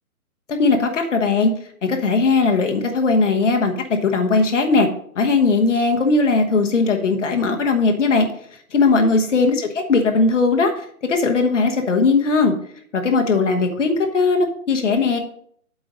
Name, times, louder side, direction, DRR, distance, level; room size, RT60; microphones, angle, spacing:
voice 1, 0.5-1.5 1.8-4.9 5.1-8.3 8.7-12.5 12.9-15.2, left 3 dB, 55° left, 4 dB, 1.2 m, -18 dB
8.1 x 4.8 x 5.1 m, 0.63 s
hypercardioid pair, 165°, 44 cm